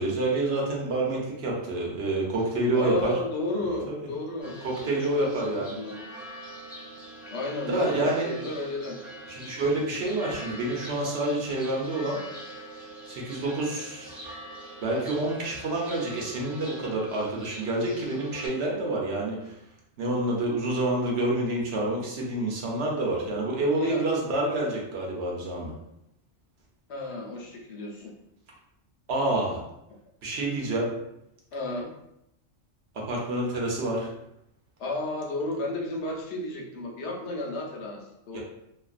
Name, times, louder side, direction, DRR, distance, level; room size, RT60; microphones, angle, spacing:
voice 1, 0.0-3.2 3.9-4.1 4.6-5.8 7.7-8.3 9.3-12.2 13.1-14.2 14.8-19.5 20.0-25.7 29.1-29.6 30.2-30.9 32.9-34.1 38.3-38.4, right 2 dB, 65° right, -2 dB, 0.9 m, -28 dB
voice 2, 2.7-4.6 4.8-6.1 7.3-9.0 23.8-24.1 26.9-28.1 31.5-31.9 34.8-38.4, left 2 dB, 70° left, 0 dB, 0.8 m, -33 dB
sound 1, 4.4-18.5, right 1 dB, ahead, 1.0 m, -43 dB
2.5 x 2.3 x 2.4 m, 0.82 s
omnidirectional pair, 1.2 m